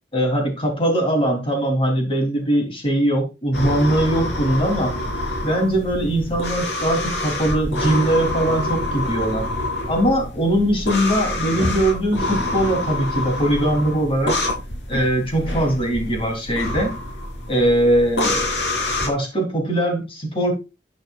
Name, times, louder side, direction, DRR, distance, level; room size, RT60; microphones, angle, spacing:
voice 1, 0.1-4.9 5.4-9.5 9.9-14.4 14.9-16.9 17.5-18.7 19.0-20.5, right 1 dB, 30° left, 2 dB, 3.4 m, -21 dB
sound 1, 3.5-19.1, left 1 dB, 80° left, 3.5 m, -26 dB
11.5 x 8.9 x 2.5 m, 0.27 s
head